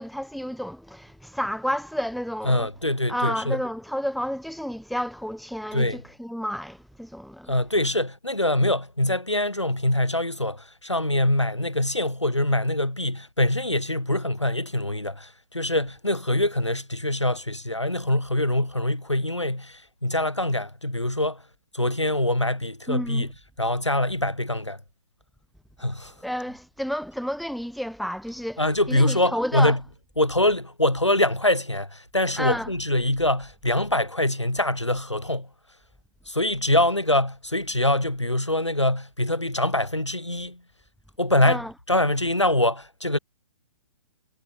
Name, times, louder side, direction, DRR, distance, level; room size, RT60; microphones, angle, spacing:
voice 1, 0.0-2.6 3.1-7.5 22.9-23.3 26.2-28.6 28.9-29.8 32.4-32.7 41.4-41.7, equal, ahead, 3.0 m, -31 dB
voice 2, 2.4-3.6 5.7-6.0 7.5-21.4 21.7-23.3 23.6-24.8 25.8-26.1 28.6-29.8 30.2-35.5 36.3-40.6 41.2-41.6 41.9-43.2, left 1 dB, 85° left, 6.9 m, -24 dB
figure-of-eight pair, 120°, 15 cm